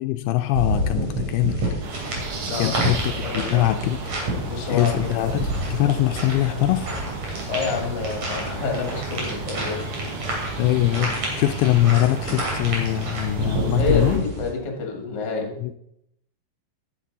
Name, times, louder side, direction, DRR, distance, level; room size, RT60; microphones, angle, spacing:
voice 1, 0.0-1.6 2.6-4.3 4.7-6.9 10.6-14.2 15.6-15.8, left 14 dB, 85° left, 7 dB, 2.4 m, -23 dB
sound 1, 0.5-14.5, right 1 dB, 45° right, 3.6 m, -29 dB
sound 2, 1.8-14.2, right 3 dB, 65° right, 1.4 m, -33 dB
voice 2, 2.5-3.7 4.3-5.5 7.5-9.9 13.8-15.5, left 4 dB, 35° left, 1 dB, 2.0 m, -29 dB
10.5 x 9.6 x 4.0 m, 0.76 s
omnidirectional pair, 4.5 m